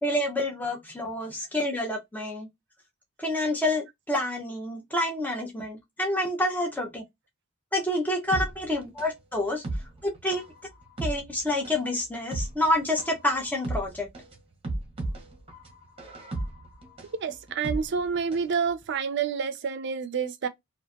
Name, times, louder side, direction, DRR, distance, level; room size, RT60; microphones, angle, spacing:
voice 1, 0.0-2.5 3.2-7.0 7.7-9.6 10.0-10.4 11.0-14.1, left 1 dB, 10° left, 0.6 m, -28 dB
sound 1, 8.3-18.5 18.8-18.9, right 2 dB, 25° right, 0.8 m, -35 dB
voice 2, 17.2-20.5, right 6 dB, 55° right, 0.4 m, -28 dB
2.8 x 2.5 x 2.2 m
head